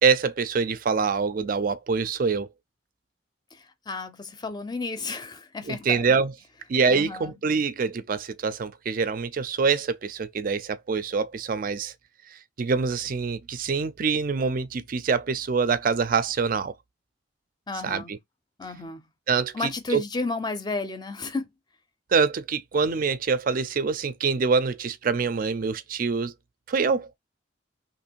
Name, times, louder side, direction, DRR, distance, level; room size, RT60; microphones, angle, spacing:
voice 1, 0.0-2.5 5.7-6.3 6.7-11.9 12.3-16.7 17.8-18.2 19.3-19.5 19.9-20.0 22.1-26.3 26.7-27.1, right 5 dB, 50° right, 0.4 m, -25 dB
voice 2, 3.5-6.1 6.9-7.3 17.7-18.2 18.6-19.1 19.5-21.5, left 3 dB, 20° left, 0.5 m, -32 dB
3.0 x 2.5 x 4.4 m
head